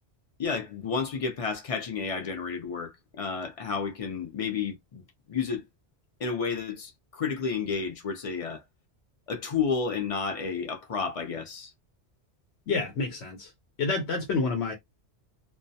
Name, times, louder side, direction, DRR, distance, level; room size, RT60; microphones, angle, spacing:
voice 1, 0.4-5.0 5.3-5.7 6.2-8.6 9.3-11.7, left 5 dB, 50° left, 0.4 m, -31 dB
voice 2, 12.7-13.5 13.8-14.7, left 4 dB, 85° left, 0.9 m, -28 dB
2.2 x 2.1 x 2.6 m
omnidirectional pair, 1.1 m